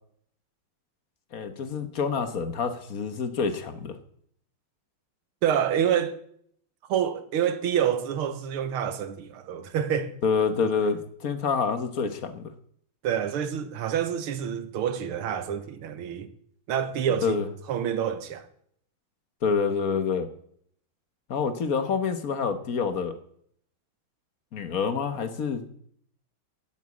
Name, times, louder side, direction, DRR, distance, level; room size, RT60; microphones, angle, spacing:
voice 1, 1.3-4.0 10.2-12.4 17.2-17.5 19.4-20.3 21.3-23.2 24.5-25.6, left 5 dB, 50° left, 1.3 m, -27 dB
voice 2, 5.4-6.2 6.9-10.1 13.0-16.3 16.7-17.4 17.7-18.5, right 9 dB, 85° right, 2.0 m, -27 dB
11.5 x 8.5 x 8.3 m
omnidirectional pair, 2.3 m